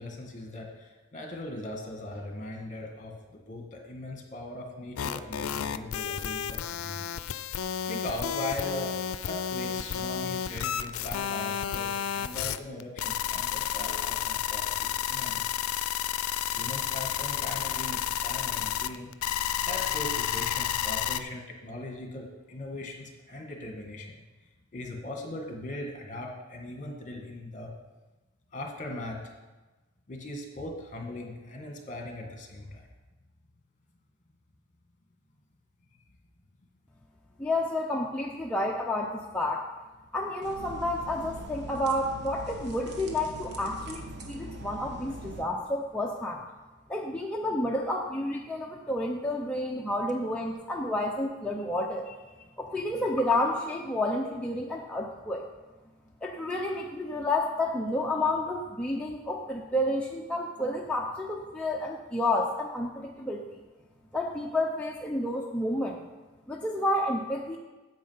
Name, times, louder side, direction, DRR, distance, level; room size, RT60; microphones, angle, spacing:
voice 1, 0.0-7.2 7.9-9.0 9.2-15.5 16.5-19.1 19.6-24.1 24.7-27.7 28.5-29.3 30.1-32.8, left 1 dB, 40° left, 2 dB, 1.6 m, -39 dB
sound 1, 5.0-21.2, left 9 dB, 85° left, 0.5 m, -31 dB
voice 2, 37.4-39.6 40.1-46.4 46.9-52.2 52.6-55.4 56.2-63.6 64.1-66.0 66.5-67.6, left 1 dB, 5° left, -2 dB, 0.7 m, -30 dB
sound 2, 40.4-45.4, equal, 55° right, 1.2 m, -42 dB
8.6 x 7.7 x 5.6 m, 1.2 s
head